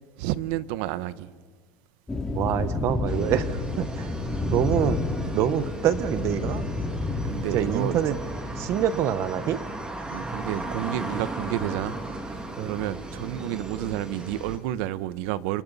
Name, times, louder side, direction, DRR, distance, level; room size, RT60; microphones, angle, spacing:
voice 1, 0.2-1.3 7.2-8.0 10.1-12.0 12.3-15.6, right 14 dB, 70° right, 16 dB, 0.8 m, -30 dB
sound 1, 2.1-8.7, left 2 dB, 10° left, 2.6 m, -30 dB
voice 2, 2.3-4.1 4.4-5.0 5.3-6.6 7.5-8.2 8.6-9.6 12.6-12.8, right 9 dB, 45° right, 13 dB, 1.0 m, -26 dB
sound 2, 3.1-14.6, right 2 dB, 10° right, 2.1 m, -36 dB
29.5 x 29.0 x 4.1 m, 1.5 s
cardioid pair, 165°, 7 cm